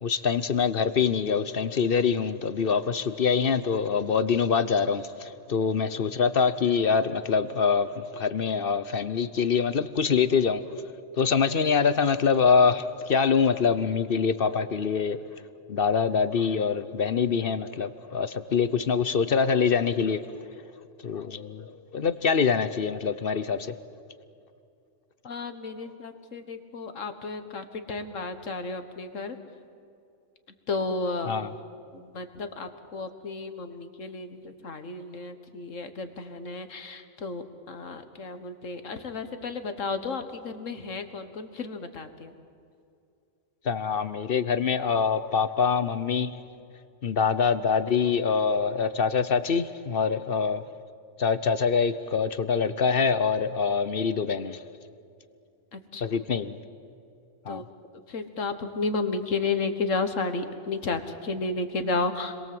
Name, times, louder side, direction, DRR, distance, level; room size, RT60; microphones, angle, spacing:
voice 1, 0.0-10.6 11.1-15.2 15.7-20.3 21.0-23.7 31.3-31.5 43.6-46.4 47.0-50.6 51.2-54.6 56.0-56.6 57.5-57.6, left 6 dB, 50° left, 1.0 m, -25 dB
voice 2, 25.2-29.4 30.7-31.3 31.9-42.3 55.7-56.0 57.5-57.6 58.1-62.4, left 3 dB, 80° left, 1.9 m, -32 dB
30.0 x 22.5 x 7.8 m
omnidirectional pair, 1.3 m